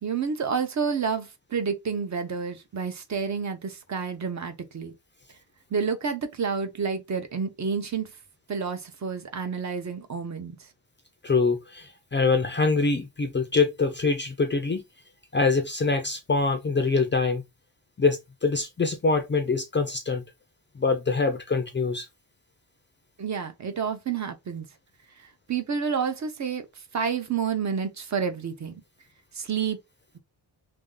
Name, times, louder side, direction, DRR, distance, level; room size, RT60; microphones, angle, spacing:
voice 1, 0.0-4.9 5.7-8.1 8.5-10.7 23.2-24.7 25.2-28.7 29.3-29.8, right 6 dB, 40° right, 0.6 m, -29 dB
voice 2, 11.2-14.8 15.3-17.4 18.0-20.2 20.8-22.1, left 4 dB, 25° left, 0.4 m, -24 dB
3.1 x 2.6 x 3.6 m
wide cardioid pair, 145°, 43 cm